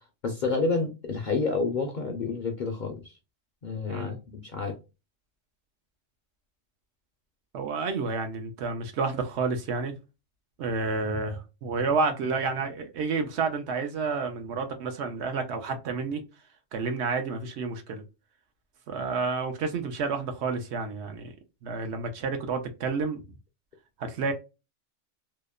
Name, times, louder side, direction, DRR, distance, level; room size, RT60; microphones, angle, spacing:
voice 1, 0.2-3.1 3.6-4.2 4.4-4.8, left 4 dB, 55° left, 0.5 m, -29 dB
voice 2, 7.5-9.9 10.6-16.2 16.7-18.0 18.9-21.3 21.6-23.2 24.0-24.3, right 4 dB, 70° right, 0.8 m, -30 dB
2.9 x 2.0 x 2.3 m
omnidirectional pair, 1.3 m